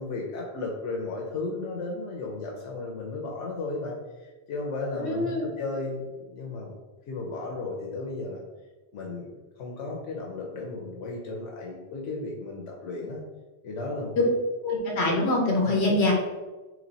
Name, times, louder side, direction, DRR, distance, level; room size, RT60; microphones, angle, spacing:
voice 1, 0.0-6.7 7.1-8.4 8.9-13.2 13.6-14.3 15.6-16.0, left 3 dB, 85° left, -1 dB, 1.0 m, -34 dB
voice 2, 5.0-5.4 14.6-16.1, left 2 dB, 70° left, 0 dB, 1.2 m, -24 dB
3.2 x 3.1 x 3.9 m, 1.2 s
omnidirectional pair, 1.2 m